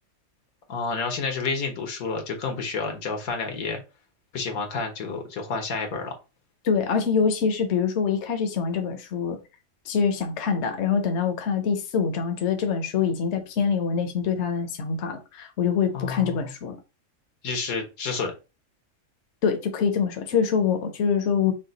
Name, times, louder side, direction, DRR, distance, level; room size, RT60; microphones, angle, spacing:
voice 1, 0.7-3.8 4.3-6.1 15.9-16.5 17.4-18.3, left 4 dB, 85° left, 1.6 m, -30 dB
voice 2, 6.6-9.4 9.9-16.8 19.4-21.5, left 6 dB, 60° left, 1.0 m, -25 dB
5.6 x 2.3 x 3.9 m
omnidirectional pair, 1.5 m